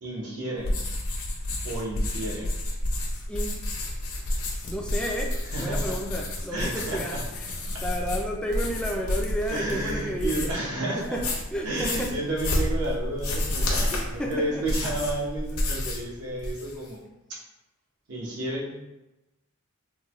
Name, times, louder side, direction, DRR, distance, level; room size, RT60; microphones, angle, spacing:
voice 1, 0.0-0.8 1.6-2.6 5.5-6.0 6.5-7.2 9.5-11.2 11.6-17.0 17.3-17.4 18.1-18.8, right 1 dB, 80° right, -3 dB, 0.9 m, -31 dB
sound 1, 0.6-10.7 11.0-16.1 16.3-16.9, left 1 dB, 70° left, 0.7 m, -30 dB
voice 2, 3.3-3.7 4.1-4.2 4.7-7.5 7.8-10.5 11.0-12.2 13.9-14.7, equal, 5° left, -1 dB, 0.3 m, -32 dB
3.8 x 2.2 x 2.9 m, 0.99 s
head